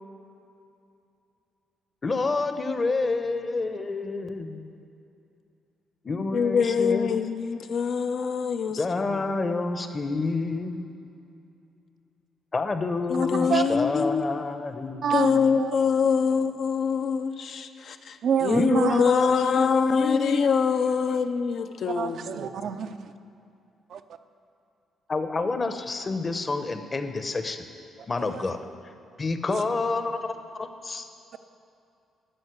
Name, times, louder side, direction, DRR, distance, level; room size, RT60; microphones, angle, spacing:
voice 1, 2.0-4.7 6.0-7.2 8.8-10.8 12.5-15.4 18.5-20.4 25.1-27.7 28.1-28.6 29.2-31.1, left 3 dB, 30° left, 0.9 m, -29 dB
voice 2, 6.3-8.8 13.1-14.2 14.9-22.4, left 6 dB, 60° left, 0.6 m, -24 dB
voice 3, 18.2-19.0 21.9-23.1 23.9-24.0 28.3-28.4 29.5-29.6, right 7 dB, 65° right, 0.5 m, -27 dB
12.5 x 5.6 x 8.1 m
cardioid pair, 90°, 0 cm